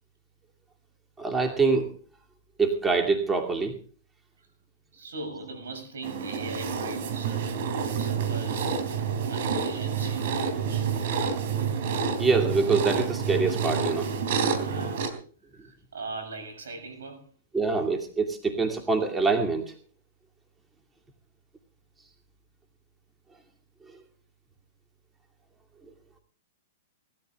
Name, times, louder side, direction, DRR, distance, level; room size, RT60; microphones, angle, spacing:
voice 1, 1.2-1.9 2.6-3.7 12.2-14.1 17.5-19.7, right 4 dB, 10° right, 3 dB, 2.5 m, -25 dB
voice 2, 4.9-7.4 7.8-8.8 9.1-10.3 10.7-11.0 14.5-15.1 15.5-17.3, right 3 dB, 80° right, 8 dB, 7.0 m, -40 dB
sound 1, 6.0-15.1, right 6 dB, 60° right, 3.5 m, -28 dB
19.0 x 13.5 x 3.7 m, 0.43 s
hypercardioid pair, 125°, 0 cm